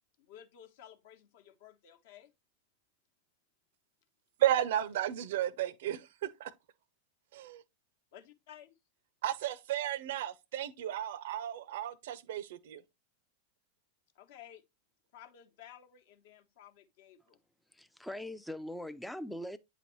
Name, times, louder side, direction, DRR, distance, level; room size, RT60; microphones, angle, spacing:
voice 1, 0.2-2.3 8.1-8.7 14.1-14.6 15.1-17.4, left 10 dB, 50° left, 0.9 m, -55 dB
voice 2, 4.4-6.5 7.3-7.6 9.2-12.8, right 12 dB, 55° right, 0.5 m, -33 dB
voice 3, 17.7-19.6, left 1 dB, ahead, 0.4 m, -41 dB
9.1 x 4.0 x 3.0 m
figure-of-eight pair, 90°, 0 cm